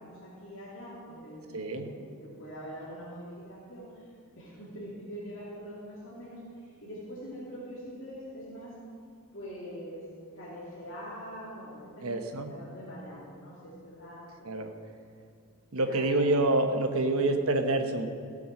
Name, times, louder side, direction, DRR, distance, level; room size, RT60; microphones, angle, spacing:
voice 1, 0.0-1.9 2.2-4.1 4.4-8.7 9.3-10.0 10.4-14.7 15.7-16.5, equal, 60° left, -8 dB, 2.8 m, -44 dB
voice 2, 1.5-1.9 12.0-12.6 14.4-14.7 15.7-18.1, right 2 dB, 80° right, 6 dB, 1.1 m, -27 dB
15.5 x 7.8 x 6.5 m, 2.3 s
head